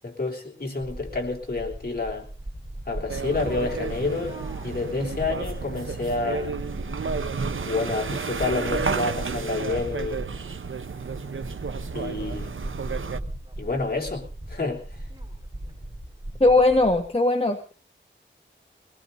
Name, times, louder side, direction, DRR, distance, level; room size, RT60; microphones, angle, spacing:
voice 1, 0.0-2.3 2.9-6.6 7.7-10.2 11.9-12.5 13.6-14.8, left 3 dB, 50° left, -1 dB, 3.4 m, -29 dB
sound 1, 0.8-17.1, right 1 dB, 25° right, 6.0 m, -38 dB
sound 2, 3.1-13.2, right 5 dB, 90° right, 0.8 m, -32 dB
voice 2, 16.4-17.7, left 2 dB, 30° left, 4 dB, 1.4 m, -19 dB
22.0 x 19.0 x 2.7 m, 0.37 s
wide cardioid pair, 60°, 20 cm